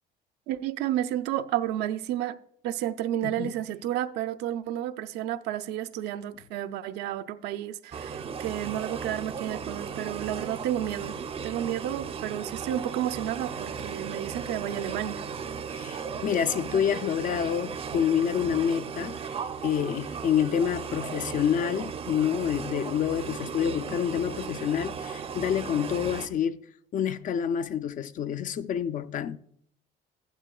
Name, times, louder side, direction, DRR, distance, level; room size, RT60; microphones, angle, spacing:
voice 1, 0.5-2.4 2.6-11.2 11.4-15.2, right 12 dB, 85° right, 0.6 m, -31 dB
voice 2, 3.2-3.5 15.7-19.2 19.6-26.6 26.9-29.4, left 8 dB, 50° left, 0.5 m, -28 dB
sound 1, 7.9-26.3, right 6 dB, 35° right, 0.6 m, -36 dB
15.0 x 11.5 x 2.3 m
cardioid pair, 110°, 17 cm